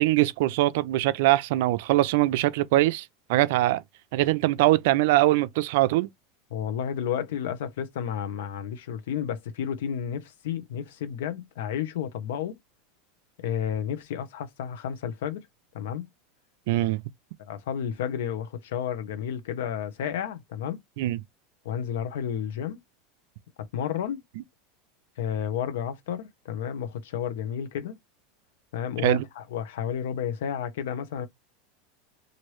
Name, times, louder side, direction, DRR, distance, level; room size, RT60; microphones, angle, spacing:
voice 1, 0.0-3.0 3.3-3.8 4.1-6.1 16.7-17.0 21.0-21.2 29.0-29.2, right 16 dB, 70° right, 0.3 m, -22 dB
voice 2, 6.5-12.6 13.4-15.4 15.7-16.1 17.5-20.8 21.6-22.8 23.6-24.2 25.2-28.0 28.7-31.3, left 8 dB, 85° left, 0.7 m, -31 dB
3.1 x 2.5 x 3.1 m
supercardioid pair, 135°, 0 cm